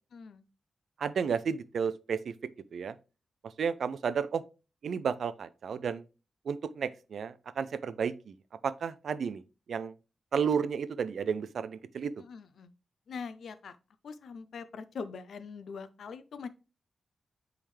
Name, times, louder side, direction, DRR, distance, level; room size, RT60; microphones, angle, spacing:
voice 1, 0.1-0.4 12.3-12.7 13.1-13.7 14.0-16.5, left 5 dB, 75° left, 0.5 m, -42 dB
voice 2, 1.0-2.3 2.7-3.0 3.4-4.4 4.8-6.0 6.5-8.4 8.6-9.4 9.7-9.9 10.3-12.1, right 6 dB, 70° right, 0.4 m, -32 dB
8.6 x 3.5 x 3.3 m
wide cardioid pair, 175°, 0 cm